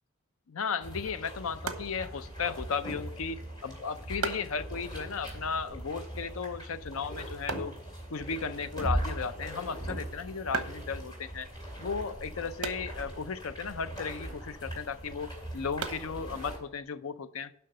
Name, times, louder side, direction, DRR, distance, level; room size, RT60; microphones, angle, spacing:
voice 1, 0.5-7.8 8.1-11.5 11.8-17.5, left 5 dB, 70° left, 12 dB, 0.6 m, -35 dB
sound 1, 0.8-16.6, right 1 dB, 20° left, 2.5 m, -40 dB
sound 2, 1.6-16.8, right 5 dB, 75° right, 1.0 m, -44 dB
7.6 x 5.7 x 6.6 m, 0.71 s
head